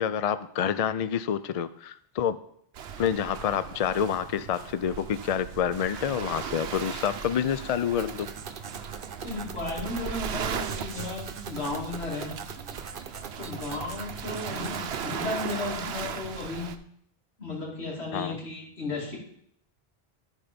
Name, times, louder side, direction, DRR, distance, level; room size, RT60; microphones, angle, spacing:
voice 1, 0.0-2.4 3.0-8.3 18.1-18.4, left 8 dB, 55° left, 13 dB, 0.4 m, -28 dB
Waves surf, 2.7-16.8, right 7 dB, 85° right, 1.0 m, -38 dB
sound 1, 7.9-15.7, right 6 dB, 55° right, 0.9 m, -41 dB
voice 2, 9.2-12.3 13.4-16.7 17.4-19.2, left 3 dB, 85° left, -3 dB, 3.0 m, -34 dB
13.0 x 4.5 x 5.1 m, 0.69 s
omnidirectional pair, 1.1 m